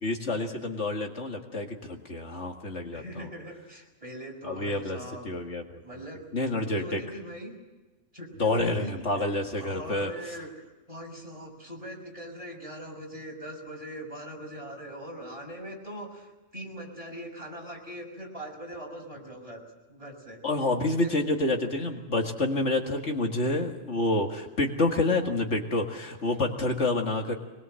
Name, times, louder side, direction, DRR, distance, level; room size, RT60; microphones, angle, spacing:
voice 1, 0.0-3.3 4.4-5.0 5.2-5.8 6.3-7.0 8.4-10.1 20.4-27.4, left 2 dB, 65° left, 3 dB, 2.3 m, -28 dB
voice 2, 2.9-5.3 5.8-7.5 8.1-19.6 19.9-20.4 21.0-21.2, equal, 25° right, 0 dB, 6.3 m, -41 dB
23.5 x 21.5 x 7.7 m, 1.1 s
omnidirectional pair, 1.3 m